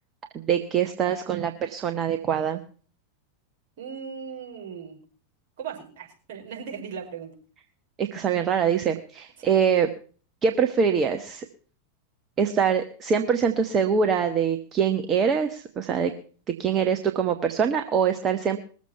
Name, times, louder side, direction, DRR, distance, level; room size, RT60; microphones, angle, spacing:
voice 1, 0.3-2.6 8.0-9.9 10.4-11.5 12.4-16.1 16.6-18.6, right 7 dB, 25° right, 6 dB, 1.1 m, -24 dB
voice 2, 3.8-5.0 5.6-7.3 18.4-18.5, right 6 dB, 50° right, -1 dB, 5.1 m, -38 dB
21.0 x 7.4 x 5.7 m, 0.42 s
figure-of-eight pair, 90°, 0 cm